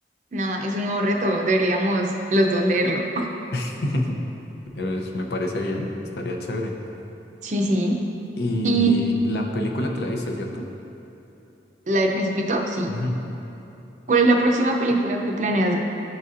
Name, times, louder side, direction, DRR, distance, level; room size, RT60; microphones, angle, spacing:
voice 1, 0.3-3.2 7.4-8.0 8.6-8.9 11.9-12.9 14.1-15.8, right 1 dB, 40° right, 1 dB, 0.5 m, -22 dB
voice 2, 3.5-4.2 4.7-5.9 6.2-6.7 8.4-10.6 12.9-13.2, left 1 dB, 65° left, 2 dB, 0.6 m, -27 dB
12.0 x 4.0 x 2.5 m, 2.9 s
head